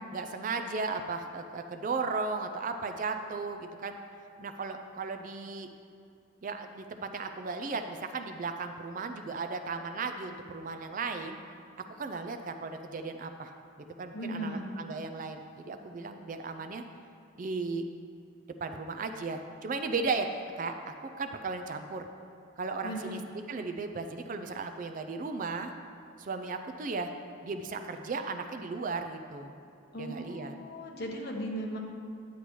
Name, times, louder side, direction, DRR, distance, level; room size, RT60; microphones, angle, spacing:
voice 1, 0.1-4.0 4.4-5.7 6.4-11.4 11.8-13.5 14.0-16.8 17.4-17.8 18.6-20.3 20.5-20.7 21.0-22.1 22.6-25.7 26.2-27.1 27.4-29.5 30.0-30.5, right 4 dB, 40° right, 6 dB, 0.4 m, -35 dB
voice 2, 14.1-14.7 22.8-23.2 29.9-31.8, right 1 dB, 50° left, 0 dB, 1.0 m, -37 dB
9.8 x 8.2 x 3.1 m, 2.5 s
head